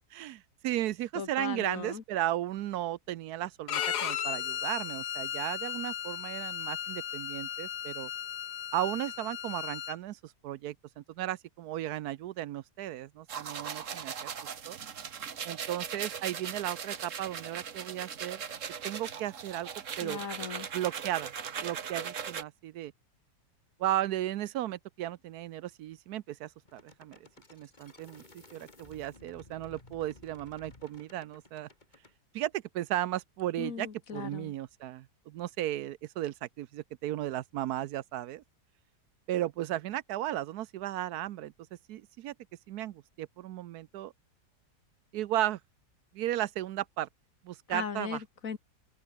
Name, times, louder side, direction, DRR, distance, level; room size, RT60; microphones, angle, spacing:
voice 1, 0.1-8.1 8.7-14.3 14.7-14.8 15.4-18.4 18.8-19.7 20.0-20.2 20.7-21.3 21.6-22.9 23.8-27.2 27.5-31.7 32.3-38.4 39.3-41.5 41.9-42.3 42.7-44.1 45.1-45.6 46.1-47.1 47.4-48.2, right 13 dB, 80° right, 1.1 m, -35 dB
voice 2, 1.2-2.0 20.0-20.7 33.6-34.5 47.7-48.6, left 6 dB, 60° left, 1.9 m, -38 dB
Bowed string instrument, 3.7-9.9, left 10 dB, 80° left, 1.6 m, -36 dB
sound 1, 13.3-22.4, right 7 dB, 55° right, 1.6 m, -39 dB
sound 2, 26.6-32.1, left 2 dB, 25° left, 2.9 m, -55 dB
omnidirectional pair, 1.7 m